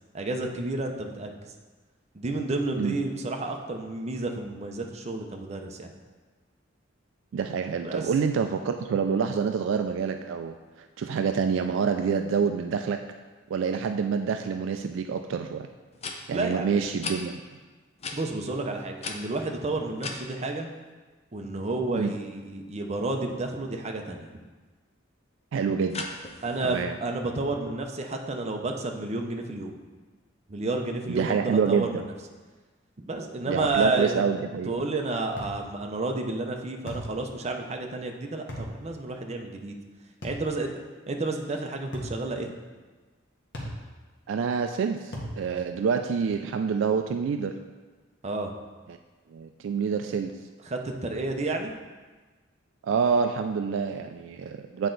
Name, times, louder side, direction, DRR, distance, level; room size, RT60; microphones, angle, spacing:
voice 1, 0.1-1.4 2.1-5.9 7.8-8.1 16.3-16.9 18.1-20.7 21.3-24.3 26.4-29.7 30.5-32.1 33.0-34.2 34.6-39.8 40.2-40.7 41.1-42.5 48.2-48.5 50.6-51.7, right 2 dB, 35° right, 3 dB, 0.6 m, -31 dB
voice 2, 7.3-10.5 11.0-13.1 13.5-15.7 16.3-17.4 21.9-22.1 25.5-26.1 26.6-26.9 31.1-32.0 33.5-34.8 44.3-47.6 48.9-49.0 49.3-50.4 52.8-54.9, right 6 dB, 70° right, 7 dB, 0.3 m, -27 dB
sound 1, 15.2-15.3 15.9-16.2 17.0-17.2 18.0-18.2 19.0-20.2 25.9-26.9, left 4 dB, 35° left, 0.6 m, -36 dB
sound 2, 33.7-33.9 35.4-35.6 36.9-37.1 38.5-38.7 40.2-40.5 41.9-42.2 43.5-43.8 45.1-45.4, equal, 65° left, 1.4 m, -36 dB
8.3 x 4.4 x 3.9 m, 1.3 s
head